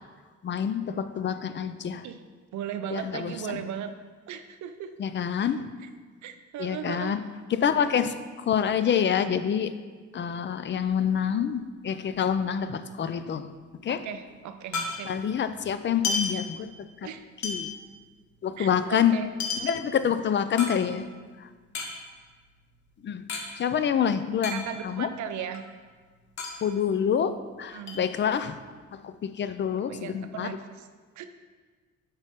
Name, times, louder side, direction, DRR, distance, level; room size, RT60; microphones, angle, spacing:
voice 1, 0.4-2.0 2.9-3.3 5.0-5.6 6.6-7.2 7.5-8.1 8.5-9.7 10.1-13.4 13.8-14.0 15.1-16.6 17.4-17.7 18.4-19.2 19.6-21.0 23.0-23.2 23.6-25.1 26.6-27.3 27.6-28.5 29.0-30.5, left 8 dB, 40° left, 11 dB, 0.4 m, -26 dB
voice 2, 2.5-3.9 4.3-5.0 5.8-5.9 6.2-7.2 7.7-8.1 13.9-15.2 17.0-17.3 18.6-19.3 24.5-25.6 27.7-28.0 29.9-30.9 31.2-31.3, right 8 dB, 70° right, 9 dB, 0.6 m, -37 dB
sound 1, 10.7-12.4 12.7-12.8 13.0-15.4 15.8-17.0 17.4-21.2 21.6-23.5 23.7-23.8 24.1-25.1 25.4-27.5 27.9-28.7, left 4 dB, 65° left, 1.2 m, -34 dB
8.2 x 5.2 x 3.6 m, 1.5 s
cardioid pair, 90°, 30 cm